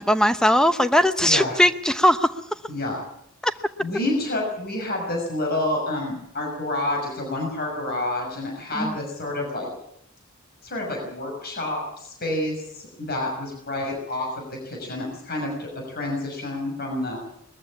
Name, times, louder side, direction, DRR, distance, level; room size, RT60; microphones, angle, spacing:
voice 1, 0.0-2.3 3.4-3.5 8.8-9.0, equal, 5° left, 11 dB, 0.8 m, -19 dB
voice 2, 1.2-1.6 2.7-3.0 3.8-9.7 10.6-17.2, left 1 dB, 45° left, 1 dB, 6.0 m, -29 dB
21.0 x 14.5 x 8.6 m, 0.75 s
head